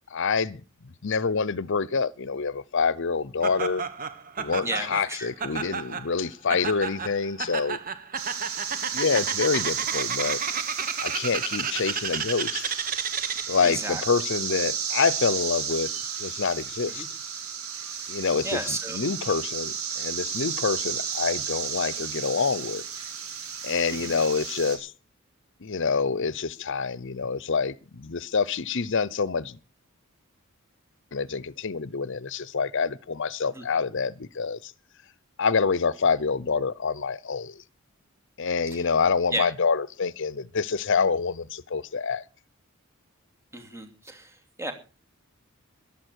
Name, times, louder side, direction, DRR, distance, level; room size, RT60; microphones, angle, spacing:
voice 1, 0.1-0.6 1.0-3.8 4.4-7.8 8.9-10.4 11.0-12.7 13.5-15.9 16.2-17.1 18.1-18.6 18.9-22.8 23.6-24.9 25.6-29.6 31.1-34.7 35.4-37.6 38.4-42.2, left 5 dB, 60° left, 0.7 m, -26 dB
Laughter, 3.4-13.7, right 6 dB, 40° right, 1.5 m, -32 dB
voice 2, 4.6-5.3 13.6-14.0 16.9-17.1 17.9-18.1 18.4-19.0 23.9-24.1 33.5-33.6 38.7-38.9 39.3-39.5 43.5-44.7, right 2 dB, 15° right, 2.8 m, -33 dB
sound 1, 8.2-24.8, right 7 dB, 75° right, 4.6 m, -33 dB
14.5 x 11.5 x 6.4 m
head